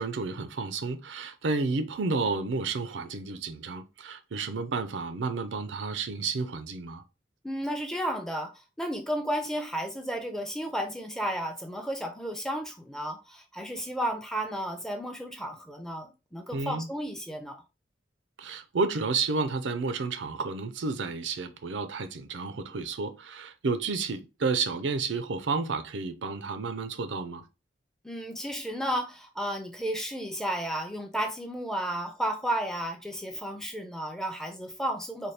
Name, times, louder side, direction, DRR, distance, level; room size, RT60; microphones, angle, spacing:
voice 1, 0.0-7.0 16.5-16.9 18.4-27.4, right 4 dB, 80° right, 0.5 m, -31 dB
voice 2, 7.4-17.6 28.0-35.3, right 1 dB, 5° left, 0.5 m, -33 dB
4.2 x 2.3 x 3.2 m
head